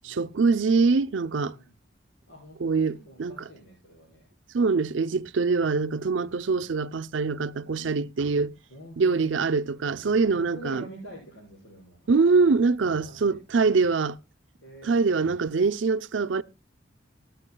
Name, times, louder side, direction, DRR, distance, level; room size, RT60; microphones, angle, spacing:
voice 1, 0.0-1.5 2.6-3.3 4.5-8.5 9.0-10.8 12.1-14.2 14.8-16.4, right 4 dB, 85° right, 0.6 m, -24 dB
voice 2, 2.3-4.3 6.6-6.8 7.7-8.3 8.5-9.4 9.9-13.4 13.6-13.9 14.6-15.0, right 1 dB, 85° left, 6.4 m, -47 dB
24.0 x 9.3 x 2.2 m
head